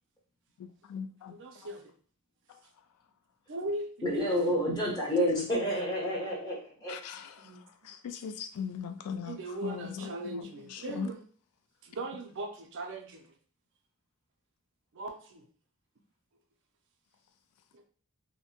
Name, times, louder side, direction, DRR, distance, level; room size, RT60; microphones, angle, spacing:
voice 1, 0.6-1.4 6.9-7.5 7.8-11.1, left 7 dB, 85° left, 8 dB, 0.3 m, -39 dB
voice 2, 1.3-1.9 3.5-4.6 7.4-7.6 9.2-11.2 11.8-13.3 14.9-15.5 17.7-17.8, right 2 dB, 55° right, 5 dB, 0.4 m, -39 dB
voice 3, 4.0-6.9, equal, 15° left, -3 dB, 0.8 m, -29 dB
2.6 x 2.1 x 2.8 m, 0.43 s
head